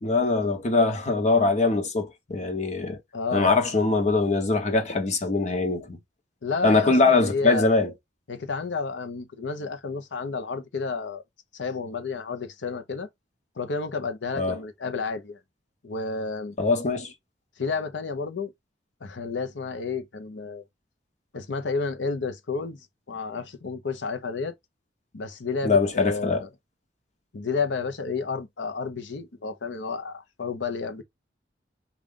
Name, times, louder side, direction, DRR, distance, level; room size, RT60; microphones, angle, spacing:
voice 1, 0.0-3.0 3.3-6.0 6.6-7.9 14.4-14.6 16.6-17.1 25.6-26.5, left 3 dB, 40° left, 0.8 m, -22 dB
voice 2, 3.1-3.5 6.4-7.7 8.3-11.2 11.5-13.1 13.6-15.4 15.8-16.6 17.6-18.5 19.0-20.6 21.3-22.8 23.1-24.6 25.1-26.5 27.3-31.0, left 4 dB, 75° left, 0.7 m, -31 dB
3.6 x 2.4 x 3.6 m
head